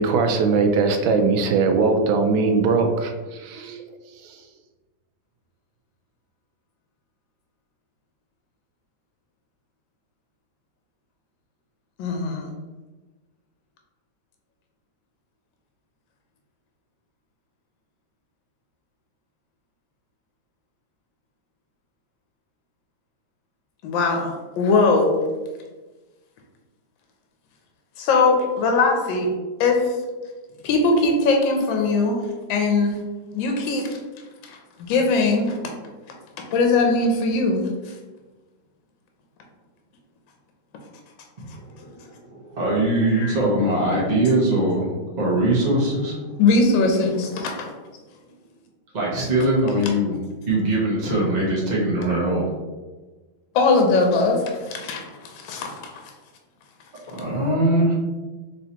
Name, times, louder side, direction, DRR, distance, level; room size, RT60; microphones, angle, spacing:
voice 1, 0.0-4.4, right 4 dB, 85° right, 5 dB, 1.4 m, -21 dB
voice 2, 12.0-12.5 23.8-25.2 28.0-29.3 29.6-29.9 30.6-32.2 32.5-33.0 33.3-33.9 34.4-35.6 36.5-37.6 43.1-43.4 46.4-47.7 53.5-55.8, left 3 dB, 75° left, 2 dB, 1.4 m, -20 dB
voice 3, 41.5-46.4 46.9-47.1 48.9-50.2 50.5-52.5 57.1-57.9, right 1 dB, 60° right, -4 dB, 0.4 m, -22 dB
4.2 x 3.6 x 2.8 m, 1.2 s
omnidirectional pair, 2.1 m